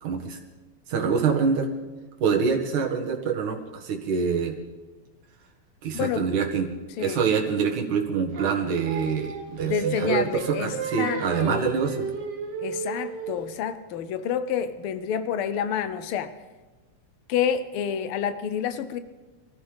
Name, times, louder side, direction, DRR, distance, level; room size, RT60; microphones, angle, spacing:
voice 1, 0.0-0.4 0.9-1.7 2.2-4.5 5.8-6.7 7.0-12.1, right 6 dB, 85° right, 2 dB, 3.2 m, -25 dB
voice 2, 5.9-6.3 7.0-7.3 9.6-11.6 12.6-16.3 17.3-19.0, left 8 dB, 75° left, 11 dB, 1.3 m, -28 dB
Singing, 8.3-13.5, right 5 dB, 45° right, 1.8 m, -33 dB
26.5 x 15.0 x 3.5 m, 1.2 s
omnidirectional pair, 3.3 m